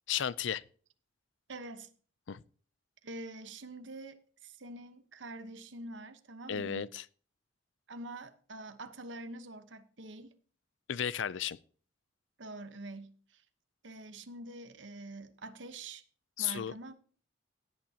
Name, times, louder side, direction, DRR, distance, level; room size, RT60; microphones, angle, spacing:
voice 1, 0.1-0.6 2.3-2.4 6.5-7.0 10.9-11.6 16.4-16.7, left 9 dB, 75° left, 0.5 m, -34 dB
voice 2, 1.5-1.9 3.0-6.9 7.9-10.3 12.4-13.4 13.8-16.0 16.4-16.9, right 2 dB, 70° right, 1.1 m, -45 dB
17.0 x 8.9 x 2.9 m
head